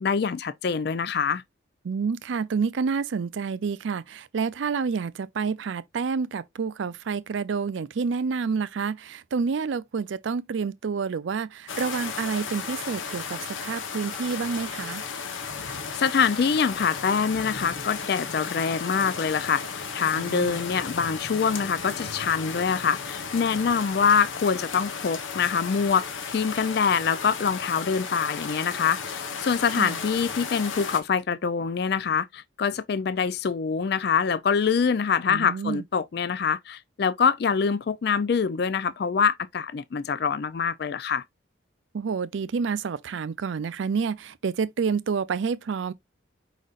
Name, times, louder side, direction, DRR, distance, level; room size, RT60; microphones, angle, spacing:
voice 1, 0.0-1.4 15.9-19.6 19.9-41.2, left 6 dB, 55° left, 0.4 m, -25 dB
voice 2, 1.8-15.0 20.1-20.6 29.8-30.0 35.3-35.8 41.9-45.9, right 5 dB, 75° right, 0.4 m, -29 dB
sound 1, 11.7-31.0, left 5 dB, 90° left, 0.9 m, -34 dB
4.9 x 4.1 x 2.4 m
head